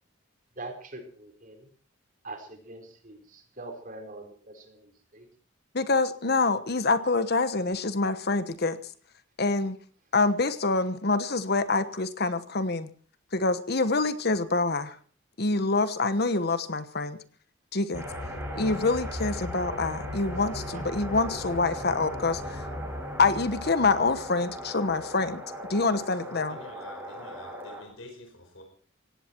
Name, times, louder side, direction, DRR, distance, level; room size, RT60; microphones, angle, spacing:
voice 1, 0.6-1.7 2.2-5.3 20.7-20.8, right 2 dB, 45° right, 4 dB, 4.4 m, -43 dB
voice 2, 5.7-8.8 9.4-9.8 10.1-12.9 13.3-14.9 15.4-17.2 17.7-18.0 18.5-22.7 23.2-25.4 25.7-26.6, left 3 dB, 55° left, 12 dB, 1.2 m, -26 dB
sound 1, 17.9-27.8, equal, 10° right, 6.4 m, -37 dB
voice 3, 26.2-28.6, left 2 dB, 85° left, 3 dB, 4.9 m, -48 dB
18.5 x 17.0 x 4.6 m, 0.43 s
head